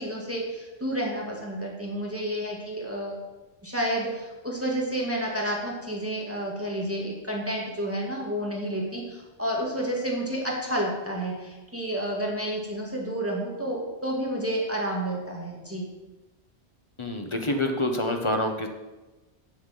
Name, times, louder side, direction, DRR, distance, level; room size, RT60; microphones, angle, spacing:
voice 1, 0.0-3.2 3.6-15.9, right 1 dB, 10° right, -3 dB, 2.0 m, -30 dB
voice 2, 17.0-18.7, left 1 dB, 25° left, 4 dB, 1.1 m, -27 dB
7.4 x 7.2 x 7.4 m, 1.1 s
omnidirectional pair, 1.1 m